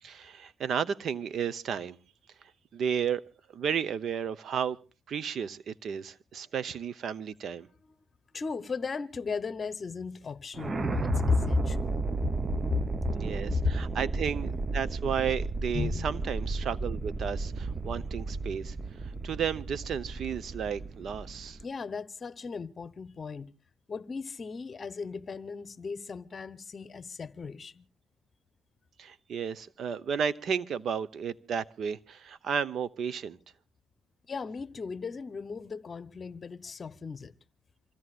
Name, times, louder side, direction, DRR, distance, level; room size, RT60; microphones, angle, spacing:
voice 1, 0.0-2.0 2.7-3.2 3.5-4.8 5.1-7.7 13.2-18.8 19.0-21.6 29.0-33.4, right 7 dB, 60° right, 0.9 m, -33 dB
voice 2, 8.3-12.0 12.7-12.8 13.6-13.7 15.7-16.1 21.6-23.5 23.9-27.8 34.3-37.3, left 5 dB, 40° left, 1.0 m, -35 dB
sound 1, 10.5-21.6, right 3 dB, 30° right, 0.8 m, -33 dB
26.5 x 16.0 x 2.5 m
cardioid pair, 90°, 0 cm